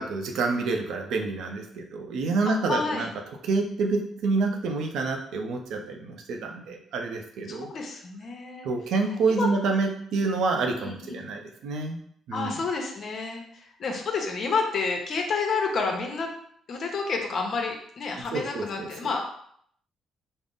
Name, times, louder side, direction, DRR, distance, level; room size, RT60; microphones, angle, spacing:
voice 1, 0.0-3.1 3.4-7.7 8.6-12.0 12.3-12.6 18.3-18.9, right 3 dB, 80° right, 3 dB, 0.5 m, -28 dB
voice 2, 2.7-3.1 7.5-8.7 9.3-9.5 10.8-11.2 12.3-16.3 16.7-19.2, left 4 dB, 55° left, 2 dB, 0.8 m, -29 dB
3.6 x 2.0 x 3.8 m, 0.67 s
cardioid pair, 90°, 0 cm